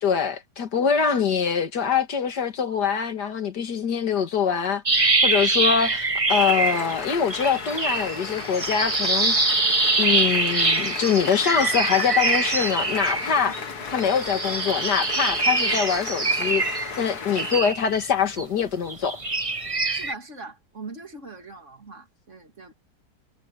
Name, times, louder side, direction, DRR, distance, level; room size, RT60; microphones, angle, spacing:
voice 1, 0.0-9.4 10.0-13.5 13.9-19.2, left 7 dB, 85° left, 2.4 m, -24 dB
sound 1, 4.9-7.1 7.3-13.6 14.0-18.4 18.9-20.1, right 3 dB, 20° right, 1.3 m, -24 dB
sound 2, 6.3-17.6, left 5 dB, 70° left, 2.3 m, -35 dB
voice 2, 19.9-22.7, right 3 dB, 45° right, 3.2 m, -41 dB
omnidirectional pair, 1.8 m